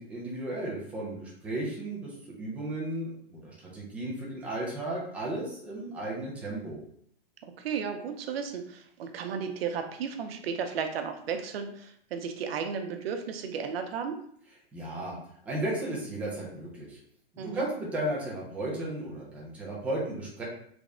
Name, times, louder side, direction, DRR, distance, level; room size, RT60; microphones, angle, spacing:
voice 1, 0.0-6.8 14.7-15.2 15.4-17.0 17.3-20.4, right 1 dB, 5° right, -5 dB, 0.3 m, -34 dB
voice 2, 7.4-14.2 17.4-17.7, right 6 dB, 75° right, 6 dB, 0.6 m, -34 dB
3.4 x 2.0 x 3.6 m, 0.65 s
hypercardioid pair, 150°, 30 cm